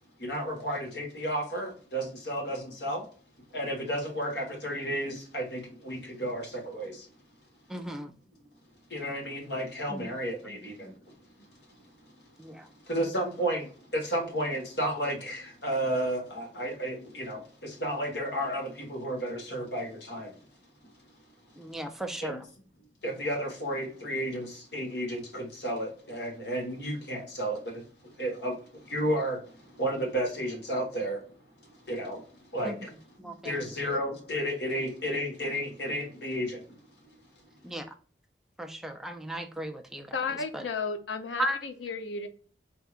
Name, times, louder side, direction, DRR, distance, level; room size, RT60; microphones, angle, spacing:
voice 1, 0.2-3.0 3.5-7.1 8.9-11.5 12.8-20.4 22.2-22.4 23.0-27.8 28.1-31.2 31.8-32.2 32.5-32.9 33.2-36.6, right 1 dB, 65° left, 1.4 m, -32 dB
voice 2, 7.7-8.1 9.9-10.1 10.8-10.9 12.4-12.7 21.6-22.5 32.6-32.8 33.2-33.6 37.6-37.9 38.6-40.7 41.4-41.6, right 1 dB, ahead, 0.4 m, -36 dB
voice 3, 40.1-42.3, left 4 dB, 85° left, 0.6 m, -33 dB
4.4 x 2.7 x 2.4 m
head